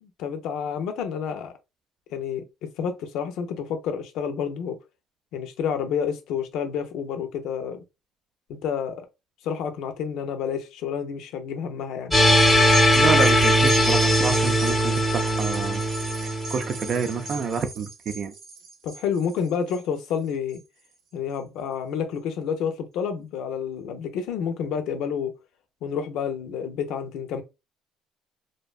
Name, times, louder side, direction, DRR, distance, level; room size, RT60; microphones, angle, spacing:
voice 1, 0.0-1.5 2.1-4.8 5.3-7.8 8.5-9.1 9.4-12.1 18.8-20.6 21.1-25.3 25.8-27.4, left 7 dB, 75° left, 0.5 m, -29 dB
sound 1, 12.1-17.2, equal, ahead, 0.7 m, -20 dB
sound 2, 12.2-20.9 21.3-21.4, right 3 dB, 85° right, 0.7 m, -37 dB
voice 2, 12.9-15.8 16.2-18.3, right 5 dB, 40° right, 0.4 m, -28 dB
2.6 x 2.2 x 2.3 m
cardioid pair, 145°, 0 cm